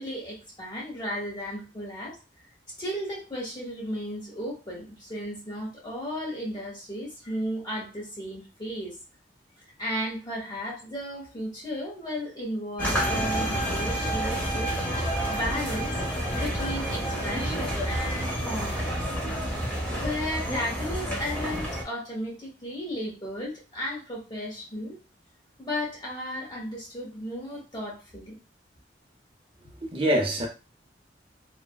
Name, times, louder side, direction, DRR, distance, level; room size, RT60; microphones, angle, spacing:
voice 1, 0.0-2.2 2.8-9.0 9.8-15.9 16.3-18.9 19.9-25.0 25.6-28.4, equal, 25° left, 1.0 m, -34 dB
sound 1, 12.8-21.8, equal, 10° left, 0.7 m, -29 dB
voice 2, 29.6-30.5, right 1 dB, 30° right, 0.5 m, -26 dB
3.2 x 2.1 x 2.2 m
head